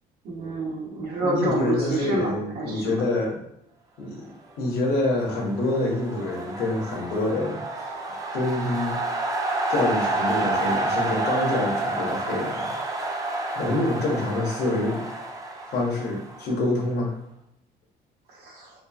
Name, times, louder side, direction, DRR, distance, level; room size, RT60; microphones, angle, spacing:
voice 1, 0.2-3.0 18.3-18.7, right 2 dB, 70° right, -2 dB, 0.9 m, -28 dB
voice 2, 1.2-3.4 4.0-7.9 8.3-9.0 9.7-12.7 13.6-15.1 15.7-17.1, left 2 dB, 70° left, -1 dB, 0.9 m, -26 dB
sound 1, 4.9-16.8, right 2 dB, 20° right, 0.4 m, -29 dB
3.0 x 2.4 x 2.3 m, 0.77 s
cardioid pair, 110°, 17 cm